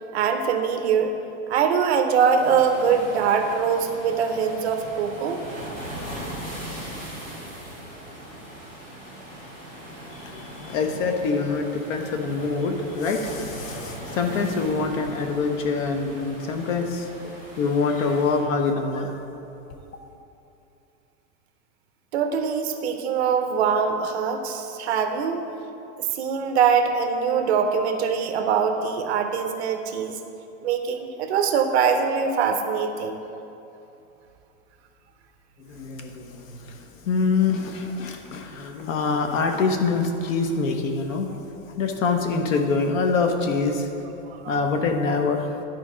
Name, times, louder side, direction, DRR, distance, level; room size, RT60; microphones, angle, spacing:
voice 1, 0.1-1.1 1.5-5.4 22.1-25.4 26.1-30.2 30.6-33.2 44.3-44.6, right 6 dB, 50° right, 6 dB, 0.7 m, -23 dB
sound 1, 2.4-18.4, right 1 dB, 25° left, 1.8 m, -39 dB
voice 2, 10.1-19.1 35.7-43.9 44.5-45.4, left 4 dB, 65° left, 5 dB, 1.0 m, -25 dB
11.0 x 4.5 x 4.9 m, 2.8 s
supercardioid pair, 180°, 42 cm